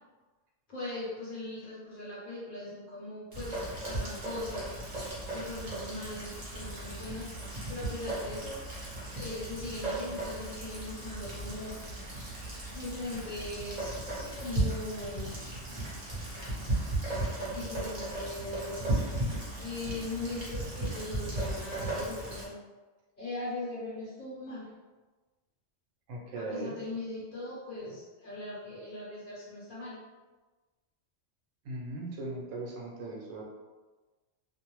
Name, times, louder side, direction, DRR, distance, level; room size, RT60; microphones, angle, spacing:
voice 1, 0.7-4.8 5.3-7.3 7.7-8.6 9.1-11.8 12.7-15.4 17.5-19.0 19.6-22.6 23.2-24.6 26.4-30.0, left 2 dB, 45° left, -7 dB, 0.9 m, -40 dB
Rain, 3.3-22.5, right 1 dB, 40° right, 0.8 m, -36 dB
voice 2, 26.1-26.7 31.6-33.4, right 2 dB, 85° right, -1 dB, 1.0 m, -38 dB
2.6 x 2.0 x 2.9 m, 1.3 s
omnidirectional pair, 1.3 m